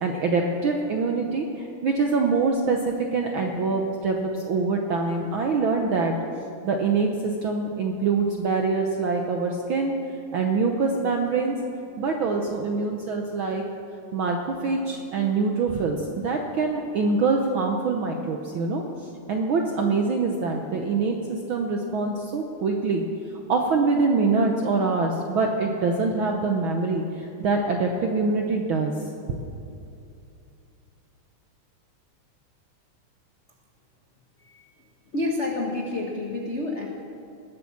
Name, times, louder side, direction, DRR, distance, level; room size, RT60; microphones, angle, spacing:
voice 1, 0.0-6.1 6.6-9.9 10.3-11.5 12.0-13.6 14.1-16.0 16.2-18.8 19.3-23.0 23.5-28.9 29.3-29.4, right 4 dB, 70° right, 2 dB, 1.2 m, -24 dB
voice 2, 35.1-36.9, left 2 dB, 75° left, 0 dB, 0.6 m, -29 dB
19.0 x 8.4 x 7.2 m, 2.6 s
omnidirectional pair, 3.4 m